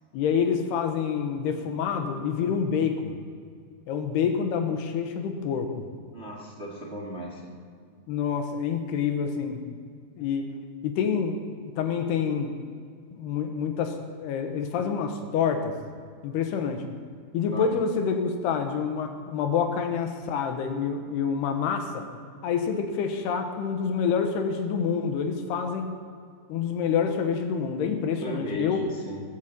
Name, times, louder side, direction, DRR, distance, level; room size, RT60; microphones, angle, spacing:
voice 1, 0.1-3.1 3.9-5.9 8.1-9.7 10.2-10.5 10.8-11.5 11.8-12.6 13.1-15.8 16.2-16.9 17.3-22.1 22.4-25.9 26.5-28.8, left 6 dB, 90° left, 6 dB, 3.3 m, -27 dB
voice 2, 6.1-7.6 17.5-17.7 28.2-29.2, right 1 dB, 35° right, -2 dB, 1.0 m, -36 dB
19.5 x 8.3 x 7.4 m, 2.2 s
omnidirectional pair, 4.6 m